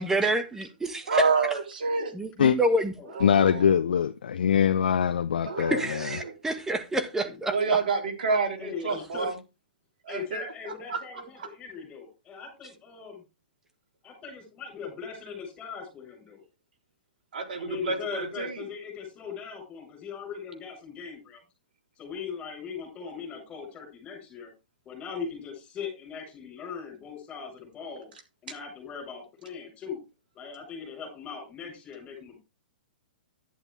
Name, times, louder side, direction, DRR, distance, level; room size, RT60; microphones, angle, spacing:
voice 1, 0.0-1.2 2.1-2.9 5.7-7.6, right 2 dB, 10° right, 1.7 m, -27 dB
voice 2, 1.1-2.1 3.1-3.8 5.4-6.3 7.5-9.3 10.1-10.4 10.9-11.0 17.3-18.0 18.4-18.6, right 4 dB, 70° right, 4.0 m, -28 dB
voice 3, 3.2-5.7, left 8 dB, 75° left, 0.7 m, -22 dB
voice 4, 8.6-9.3 10.1-13.2 14.0-16.4 17.6-21.4 22.0-24.5 24.8-28.1 28.4-30.0 30.3-32.4, left 6 dB, 25° left, 7.8 m, -39 dB
11.5 x 9.9 x 3.5 m
hypercardioid pair, 130°, 5 cm